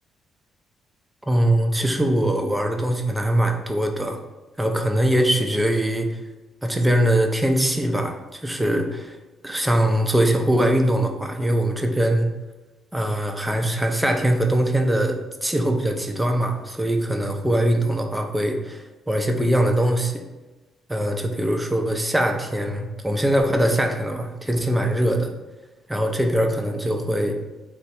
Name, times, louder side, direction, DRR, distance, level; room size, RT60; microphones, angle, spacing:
voice 1, 1.3-4.2 4.6-6.1 6.6-9.2 9.4-12.3 12.9-20.1 20.9-25.3 25.9-27.3, right 1 dB, 10° right, 4 dB, 0.5 m, -22 dB
3.4 x 2.0 x 4.2 m, 1.1 s
cardioid pair, 90°, 0 cm